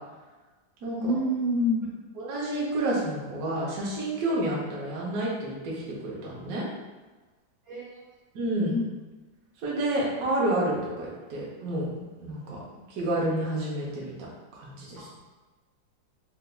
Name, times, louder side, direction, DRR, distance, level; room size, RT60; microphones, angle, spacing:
voice 1, 0.9-1.8 7.6-8.0 8.7-8.8 12.7-12.8 15.0-15.1, left 1 dB, 85° right, -5 dB, 1.8 m, -27 dB
voice 2, 2.2-6.7 8.3-8.8 9.6-12.6 12.9-14.1 14.5-15.2, right 1 dB, 60° right, -5 dB, 1.1 m, -29 dB
3.4 x 3.3 x 2.2 m, 1.2 s
omnidirectional pair, 2.0 m